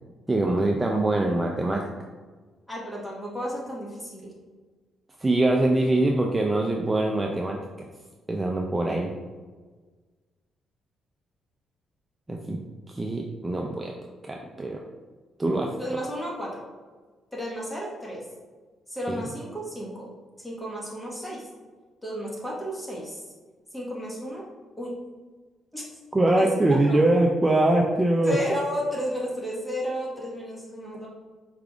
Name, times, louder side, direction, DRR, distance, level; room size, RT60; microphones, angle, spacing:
voice 1, 0.3-1.8 5.2-7.6 8.3-9.1 12.3-12.6 12.9-13.9 14.3-14.8 15.4-15.7 19.1-19.3 26.1-28.4, right 2 dB, 20° right, 0 dB, 0.4 m, -23 dB
voice 2, 2.7-4.3 15.8-16.6 17.3-18.2 18.9-20.1 20.4-21.4 22.0-23.2 23.7-24.4 24.8-24.9 25.7-25.9 26.4-26.5 26.9-27.0 28.2-31.1, equal, 10° left, -4 dB, 1.3 m, -32 dB
4.7 x 3.4 x 2.4 m, 1.4 s
cardioid pair, 90°, 0 cm